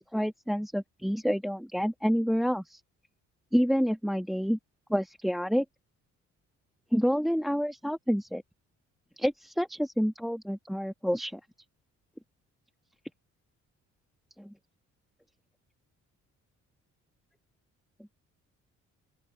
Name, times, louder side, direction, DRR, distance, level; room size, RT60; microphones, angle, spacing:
voice 1, 0.0-2.8 3.5-4.6 4.9-5.6 6.9-8.4 9.2-11.4 14.4-14.5, equal, ahead, 1.5 m, -28 dB
open air
cardioid pair, 90°, 30 cm